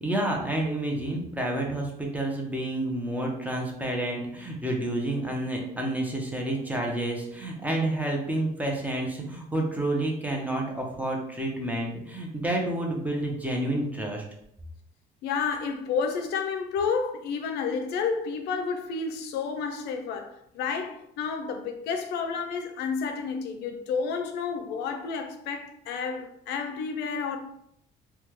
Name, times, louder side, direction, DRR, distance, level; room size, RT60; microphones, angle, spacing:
voice 1, 0.0-14.2, right 1 dB, 10° right, 0.7 m, -29 dB
voice 2, 15.2-27.4, left 5 dB, 75° left, 0.4 m, -30 dB
3.3 x 2.2 x 2.9 m
cardioid pair, 110°, 17 cm